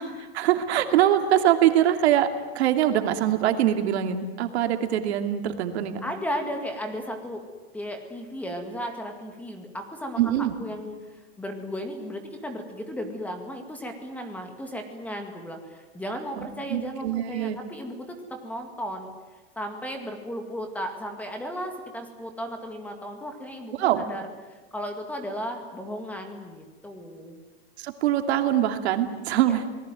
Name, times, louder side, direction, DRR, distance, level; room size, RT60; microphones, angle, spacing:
voice 1, 0.0-2.3 2.5-6.0 10.2-10.5 16.4-17.6 23.8-24.0 27.8-29.7, right 11 dB, 75° right, 6 dB, 2.6 m, -23 dB
voice 2, 6.0-7.4 7.7-19.1 19.6-24.3 24.7-27.4 29.4-29.6, equal, 5° left, 5 dB, 2.1 m, -35 dB
28.0 x 19.0 x 9.3 m, 1.2 s
supercardioid pair, 175°, 33 cm